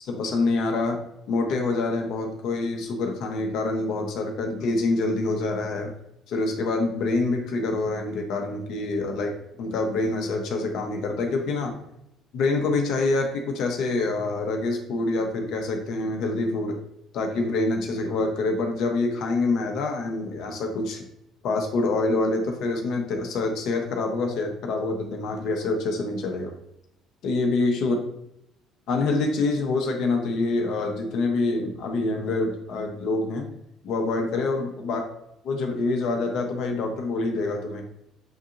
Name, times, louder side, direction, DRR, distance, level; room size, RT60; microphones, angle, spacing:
voice 1, 0.1-1.0 1.3-5.9 6.3-11.7 12.3-16.8 17.1-21.0 21.4-26.5 27.2-27.9 28.9-33.5 33.8-35.0 35.4-37.9, left 3 dB, 65° left, 2 dB, 0.8 m, -26 dB
6.9 x 2.7 x 2.5 m, 0.80 s
hypercardioid pair, 55°, 0 cm